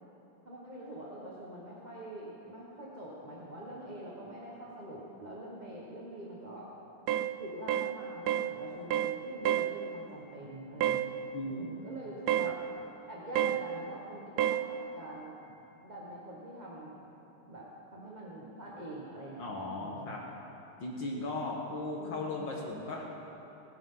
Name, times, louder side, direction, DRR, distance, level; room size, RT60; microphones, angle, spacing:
voice 1, 0.4-6.7 7.1-12.5 13.1-15.3 15.8-17.0 17.5-20.2 22.0-22.2, right 1 dB, 25° right, -5 dB, 1.4 m, -45 dB
sound 1, 7.1-7.3 7.7-7.9 8.3-8.5 8.9-9.2 9.4-9.7 10.8-11.1 12.3-12.5 13.4-13.6 14.4-14.6, right 11 dB, 90° right, 0.8 m, -28 dB
voice 2, 19.4-20.2 20.8-23.0, left 2 dB, 60° left, -2 dB, 2.0 m, -37 dB
28.5 x 10.0 x 3.9 m, 3.0 s
omnidirectional pair, 2.3 m